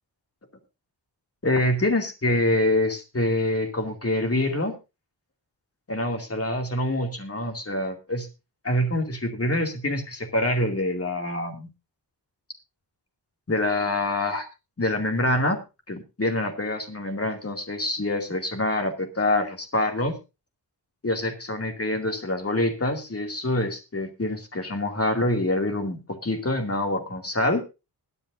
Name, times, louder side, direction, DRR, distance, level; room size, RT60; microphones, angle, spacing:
voice 1, 1.4-4.8 5.9-8.3 8.6-11.7 13.5-14.5 14.8-15.6 15.9-20.2 21.0-27.6, left 1 dB, 35° left, 4 dB, 2.5 m, -26 dB
21.0 x 9.5 x 2.6 m, 0.28 s
wide cardioid pair, 120°, 43 cm